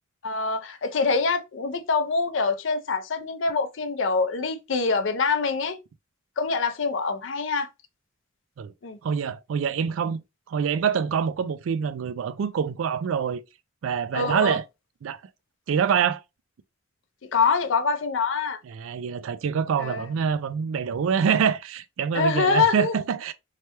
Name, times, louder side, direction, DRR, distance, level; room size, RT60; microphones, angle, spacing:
voice 1, 0.2-5.8 6.4-7.7 8.8-9.0 14.1-14.6 17.3-18.6 19.8-20.1 22.1-22.9, left 4 dB, 65° left, 0.5 m, -25 dB
voice 2, 9.0-10.2 10.5-13.4 13.8-14.6 15.0-15.2 15.7-16.2 18.6-23.3, right 7 dB, 80° right, 0.3 m, -25 dB
3.2 x 2.2 x 2.8 m
head